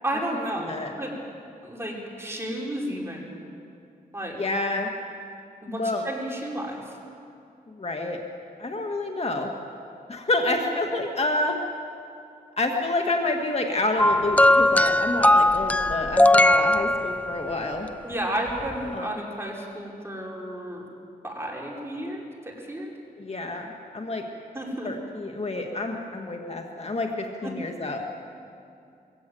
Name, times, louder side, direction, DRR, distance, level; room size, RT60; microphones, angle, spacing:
voice 1, 0.0-1.1 1.6-3.4 4.1-4.4 5.6-6.9 18.0-20.9 21.2-22.9 24.5-24.9 27.4-27.5, right 1 dB, 15° right, -2 dB, 5.2 m, -32 dB
voice 2, 4.4-4.9 5.7-6.1 7.7-8.2 8.6-9.5 10.1-11.6 12.6-17.9 18.9-19.1 23.2-24.2 24.8-28.1, left 2 dB, 40° left, 2 dB, 1.9 m, -28 dB
sound 1, 14.0-17.5 18.6-18.7, left 1 dB, 10° left, 0.6 m, -19 dB
22.5 x 17.5 x 8.0 m, 2.5 s
cardioid pair, 60°, 16 cm